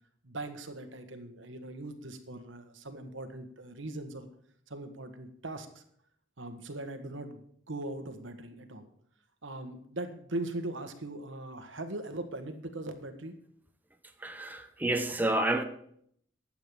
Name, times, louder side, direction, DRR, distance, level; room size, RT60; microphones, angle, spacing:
voice 1, 0.2-4.3 4.7-5.8 6.4-7.4 7.7-8.9 9.4-13.3, right 2 dB, 80° right, 1.6 m, -40 dB
voice 2, 14.2-15.6, right 1 dB, 10° right, 0.8 m, -29 dB
11.5 x 7.9 x 7.0 m
head